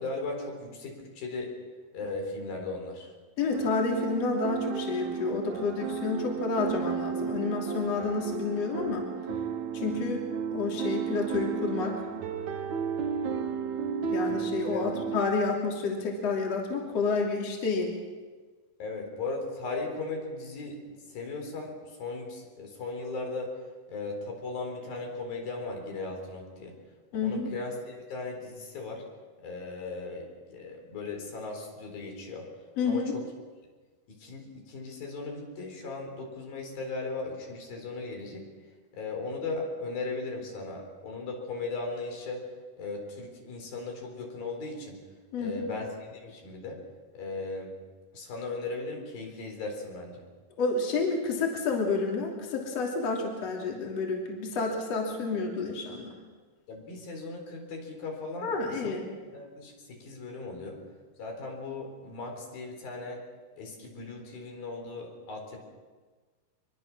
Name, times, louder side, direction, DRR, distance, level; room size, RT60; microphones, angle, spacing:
voice 1, 0.0-1.5 1.9-3.1 14.7-15.0 18.8-20.8 21.1-23.5 23.9-26.8 27.2-29.0 29.4-32.5 32.9-33.2 34.1-38.5 38.9-42.4 42.8-45.0 45.4-46.8 47.1-47.7 48.1-50.2 56.7-58.9 59.3-60.8 61.2-63.2 63.6-65.6, left 3 dB, 80° left, 2 dB, 5.9 m, -37 dB
voice 2, 3.4-9.0 9.7-10.2 10.5-12.0 14.1-17.9 27.1-27.5 32.8-33.1 45.3-45.7 50.6-56.1 58.4-59.0, left 4 dB, 45° left, 0 dB, 3.9 m, -29 dB
sound 1, 3.5-15.2, right 7 dB, 60° right, 2.6 m, -33 dB
24.5 x 22.5 x 6.2 m, 1.4 s
omnidirectional pair, 4.1 m